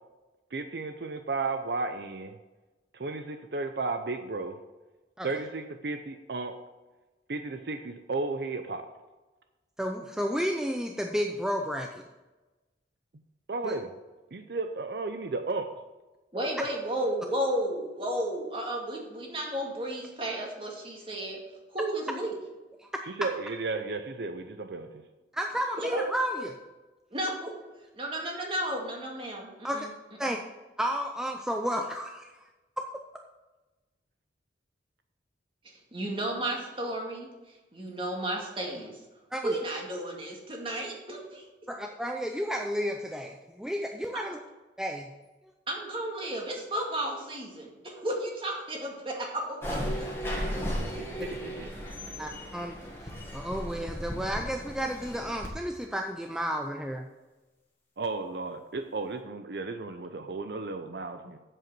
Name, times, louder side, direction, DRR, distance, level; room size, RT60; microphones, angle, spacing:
voice 1, 0.5-2.3 2.9-4.6 5.2-6.5 7.3-8.8 13.5-13.9 14.3-15.7 23.0-25.0 50.4-51.7 58.0-61.4, right 3 dB, 60° right, 7 dB, 0.6 m, -34 dB
voice 2, 9.8-12.0 13.6-13.7 22.8-23.0 25.3-26.5 29.6-29.9 30.2-30.4 30.8-32.3 32.8-32.9 39.3-39.6 41.7-44.4 44.8-45.1 52.2-52.8 53.3-57.1, equal, 5° right, 3 dB, 0.5 m, -32 dB
voice 3, 16.3-21.4 21.7-22.3 25.8-26.1 27.1-27.6 27.9-29.9 30.2-30.4 35.6-39.0 39.4-41.5 44.1-44.2 45.7-50.1, right 1 dB, 30° right, -1 dB, 2.1 m, -33 dB
sound 1, 49.6-55.5, equal, 15° left, 1.7 m, -35 dB
7.8 x 7.8 x 6.1 m, 1.1 s
head